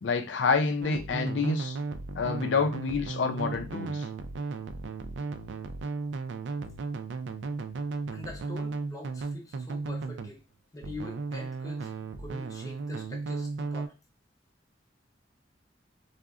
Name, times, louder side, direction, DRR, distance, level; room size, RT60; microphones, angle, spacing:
voice 1, 0.0-1.8 2.2-4.1, left 4 dB, 90° left, 0.4 m, -28 dB
sound 1, 0.8-10.3 10.8-13.9, right 4 dB, 80° right, 0.4 m, -35 dB
voice 2, 8.1-10.4 10.7-11.9 12.2-13.9, left 1 dB, 20° left, 0.6 m, -44 dB
3.6 x 2.1 x 2.4 m
head